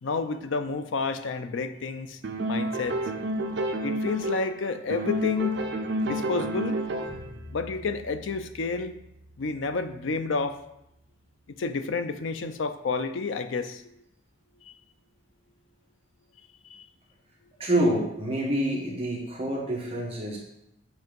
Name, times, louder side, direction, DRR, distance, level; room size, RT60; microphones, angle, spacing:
voice 1, 0.0-2.2 2.5-3.0 3.8-5.6 6.0-6.8 7.5-9.0 9.4-10.6 11.6-13.8 14.7-14.8 16.7-16.9, left 4 dB, 75° left, 10 dB, 0.5 m, -30 dB
sound 1, 2.2-4.6 4.9-7.3, right 1 dB, 60° right, 0.6 m, -30 dB
sound 2, 7.1-12.1, left 1 dB, 45° left, 1.6 m, -49 dB
voice 2, 17.6-20.4, right 1 dB, 30° right, -4 dB, 1.4 m, -27 dB
7.9 x 2.9 x 5.2 m, 0.83 s
head